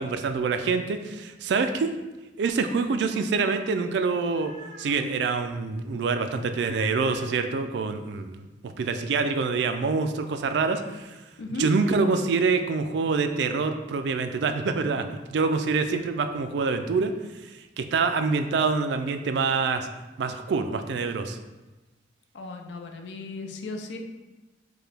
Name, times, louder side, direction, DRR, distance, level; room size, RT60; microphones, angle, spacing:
voice 1, 0.0-1.9 2.4-4.5 4.8-8.5 8.8-11.2 11.6-17.1 17.4-19.9 20.2-21.4, right 4 dB, 75° right, 8 dB, 0.3 m, -26 dB
sound 1, 4.0-5.1 6.5-7.5 10.3-11.0, right 1 dB, 30° left, 0.7 m, -49 dB
voice 2, 22.3-24.0, left 2 dB, 80° left, 5 dB, 0.4 m, -36 dB
4.7 x 2.2 x 3.3 m, 1.1 s
head